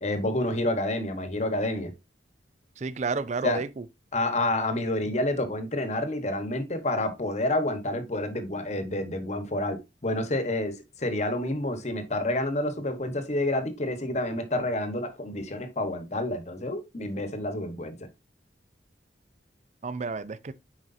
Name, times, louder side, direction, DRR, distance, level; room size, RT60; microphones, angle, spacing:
voice 1, 0.0-1.9 3.4-3.6 4.1-18.1, left 1 dB, 35° left, 1.1 m, -29 dB
voice 2, 2.8-3.8 19.8-20.5, right 4 dB, 40° right, 0.5 m, -31 dB
9.5 x 4.8 x 2.6 m
head